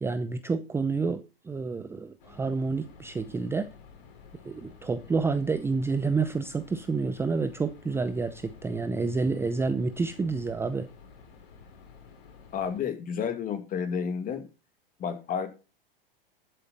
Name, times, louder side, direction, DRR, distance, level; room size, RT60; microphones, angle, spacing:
voice 1, 0.0-3.7 4.4-10.9, right 4 dB, 10° right, 0.6 m, -29 dB
sound 1, 2.2-12.8, left 5 dB, 60° left, 4.3 m, -52 dB
voice 2, 12.5-14.5 15.0-15.5, left 7 dB, 30° left, 2.3 m, -31 dB
12.5 x 7.8 x 4.1 m
hypercardioid pair, 115°, 29 cm